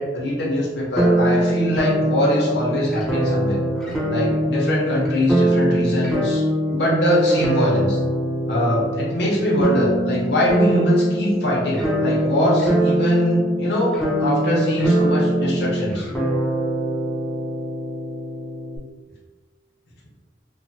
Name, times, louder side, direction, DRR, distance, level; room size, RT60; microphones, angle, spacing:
voice 1, 0.0-3.6 4.1-8.0 8.5-16.1, left 1 dB, 65° left, -5 dB, 0.6 m, -22 dB
sound 1, 1.0-18.8, right 1 dB, 5° left, 0.4 m, -22 dB
3.0 x 2.0 x 2.6 m, 1.4 s
head